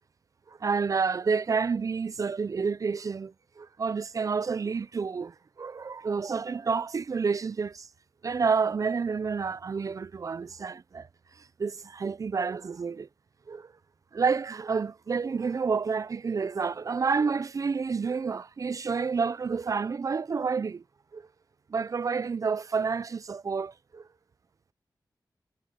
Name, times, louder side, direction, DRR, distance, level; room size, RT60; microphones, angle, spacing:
voice 1, 0.5-7.9 8.2-11.1 11.6-13.1 13.5-13.7 14.1-20.8 21.1-21.2 21.7-24.1, right 5 dB, 50° right, 0.4 m, -29 dB
wide cardioid pair, 115°, 7 cm